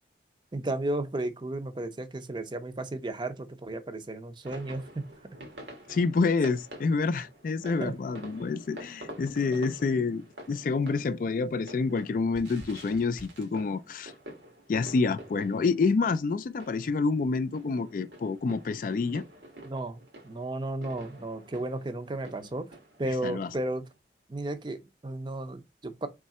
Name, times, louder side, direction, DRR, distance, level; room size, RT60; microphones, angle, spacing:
voice 1, 0.5-5.1 7.8-7.9 19.6-22.7 23.0-23.8 24.3-26.1, right 2 dB, 25° right, 0.5 m, -34 dB
sound 1, 4.4-23.9, right 1 dB, 90° right, 1.5 m, -48 dB
voice 2, 5.9-14.1 14.7-19.2 23.2-23.5, left 4 dB, 50° left, 0.3 m, -28 dB
3.7 x 3.2 x 4.1 m
head